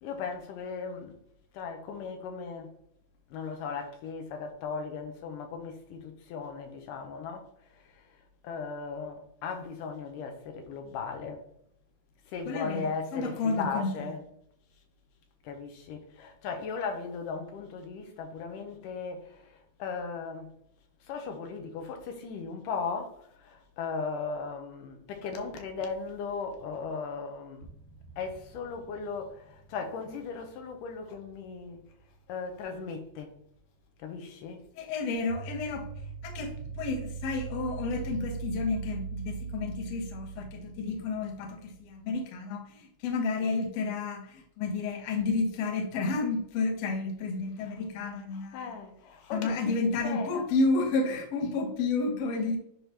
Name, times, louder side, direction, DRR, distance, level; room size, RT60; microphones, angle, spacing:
voice 1, 0.0-1.2 1.5-2.7 3.3-8.0 8.4-11.5 12.3-14.3 15.4-20.5 21.1-27.7 28.2-31.8 32.3-33.3 34.0-34.7 48.3-49.7 50.0-50.5, left 5 dB, 90° left, 2.5 m, -37 dB
voice 2, 12.5-14.1 34.8-35.9 36.2-48.6 49.3-52.6, left 3 dB, 65° left, 1.9 m, -31 dB
sound 1, 25.3-26.8 27.1-27.2 27.6-32.0 35.1-42.2, right 5 dB, 60° right, 1.9 m, -42 dB
10.5 x 3.5 x 3.0 m
omnidirectional pair, 3.7 m